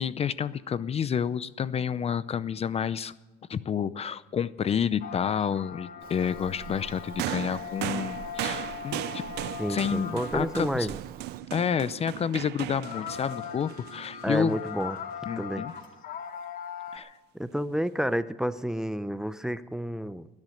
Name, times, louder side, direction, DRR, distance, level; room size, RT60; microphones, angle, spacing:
voice 1, 0.0-3.1 3.5-9.2 9.7-10.9 11.5-14.6 15.3-15.7 16.9-17.2, left 7 dB, 35° left, 16 dB, 0.6 m, -29 dB
sound 1, 5.0-11.0 12.7-17.0, left 8 dB, 55° left, 1.3 m, -40 dB
Bird vocalization bird call bird song, 6.0-11.4, right 9 dB, 60° right, 0.8 m, -47 dB
sound 2, 7.2-14.7 15.7-15.8, right 16 dB, 80° right, 0.5 m, -37 dB
voice 2, 9.6-11.0 14.2-15.0 15.4-15.6 17.3-20.3, equal, 5° right, 13 dB, 0.7 m, -30 dB
20.5 x 10.5 x 6.6 m, 1.1 s
cardioid pair, 110°, 17 cm